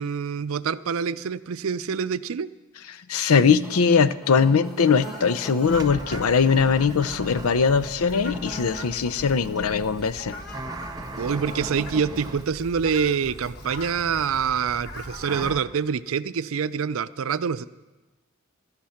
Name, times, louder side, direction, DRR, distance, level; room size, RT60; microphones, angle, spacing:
voice 1, 0.0-2.5 11.2-17.7, right 6 dB, 75° right, 16 dB, 0.5 m, -26 dB
voice 2, 3.1-10.3, left 5 dB, 85° left, 15 dB, 0.6 m, -21 dB
sound 1, 3.6-12.0, right 1 dB, ahead, 1.6 m, -43 dB
Fowl, 4.6-15.5, left 2 dB, 45° left, 1.1 m, -43 dB
sound 2, 5.6-15.6, right 2 dB, 15° right, 0.7 m, -39 dB
17.0 x 12.0 x 5.8 m, 1.1 s
head